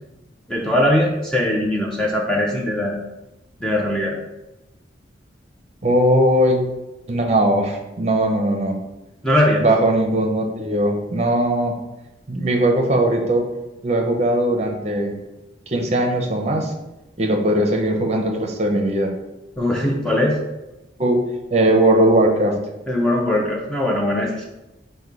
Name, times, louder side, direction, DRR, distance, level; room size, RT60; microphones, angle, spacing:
voice 1, 0.5-2.9 3.6-4.2 9.2-9.6 19.6-20.4 22.9-24.4, left 1 dB, 5° left, -3 dB, 0.5 m, -20 dB
voice 2, 5.8-6.6 7.1-8.7 9.6-11.8 12.3-13.5 13.8-15.1 15.7-16.7 17.2-19.1 21.0-21.2 21.5-22.6, right 1 dB, 35° right, 3 dB, 0.6 m, -19 dB
5.3 x 2.2 x 4.6 m, 0.98 s
head